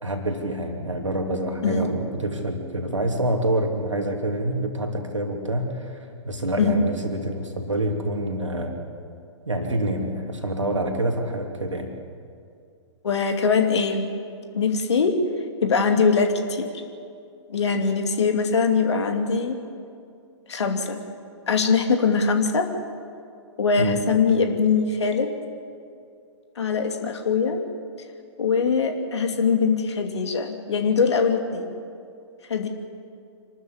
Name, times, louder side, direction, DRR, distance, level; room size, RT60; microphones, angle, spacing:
voice 1, 0.0-6.0 6.2-8.8 9.5-11.9 23.8-24.0, right 1 dB, 85° right, 3 dB, 3.0 m, -26 dB
voice 2, 13.0-14.1 14.5-15.2 15.6-16.7 17.5-19.6 20.5-21.0 21.5-22.7 23.6-25.3 26.6-27.6 28.4-31.8 32.5-32.7, left 5 dB, 65° left, 5 dB, 2.6 m, -22 dB
26.5 x 13.0 x 8.6 m, 2.4 s
figure-of-eight pair, 115°, 15 cm